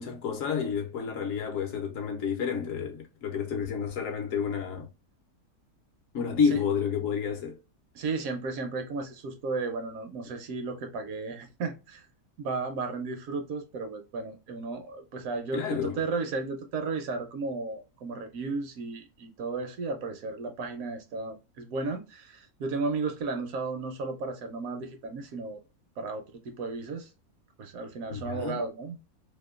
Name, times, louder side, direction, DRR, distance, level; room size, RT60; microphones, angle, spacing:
voice 1, 0.0-4.9 6.1-7.6 15.5-16.0 28.1-28.6, left 6 dB, 70° left, 0.8 m, -30 dB
voice 2, 7.9-12.1 12.4-25.6 26.0-27.1 27.6-29.0, right 3 dB, 70° right, 0.9 m, -34 dB
2.8 x 2.1 x 2.2 m
omnidirectional pair, 1.6 m